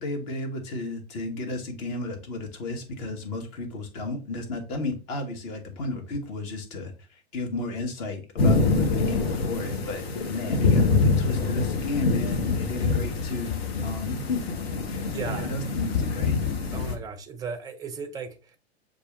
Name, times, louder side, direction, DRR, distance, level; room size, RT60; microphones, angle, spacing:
voice 1, 0.0-13.6 13.8-14.4 14.9-16.4, left 2 dB, 40° left, 1.1 m, -33 dB
sound 1, 8.4-17.0, left 3 dB, 65° left, 0.9 m, -25 dB
voice 2, 15.1-15.5 16.7-18.6, right 5 dB, 10° right, 0.5 m, -36 dB
6.5 x 2.5 x 3.0 m
figure-of-eight pair, 100°, 34 cm